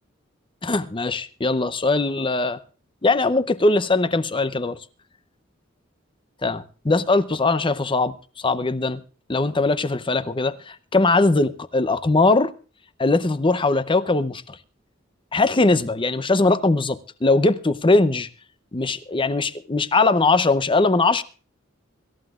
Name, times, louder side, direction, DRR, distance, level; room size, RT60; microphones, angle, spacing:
voice 1, 0.6-2.6 3.0-4.8 6.4-8.1 8.4-9.0 9.3-12.5 13.0-14.6 15.3-18.3 18.7-21.2, left 3 dB, 25° left, 0.7 m, -20 dB
25.5 x 13.5 x 2.5 m
head